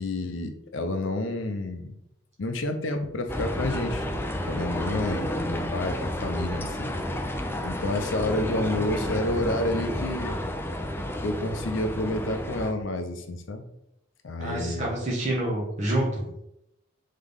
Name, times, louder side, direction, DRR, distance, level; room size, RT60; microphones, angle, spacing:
voice 1, 0.0-1.9 2.4-4.1 4.5-7.0 7.6-10.4 11.2-13.6 14.2-14.9, left 1 dB, 70° left, 7 dB, 0.6 m, -29 dB
sound 1, 3.3-12.7, left 1 dB, 10° left, 0.3 m, -31 dB
voice 2, 14.4-16.4, right 1 dB, 35° right, -5 dB, 1.3 m, -28 dB
3.7 x 3.7 x 3.5 m, 0.82 s
head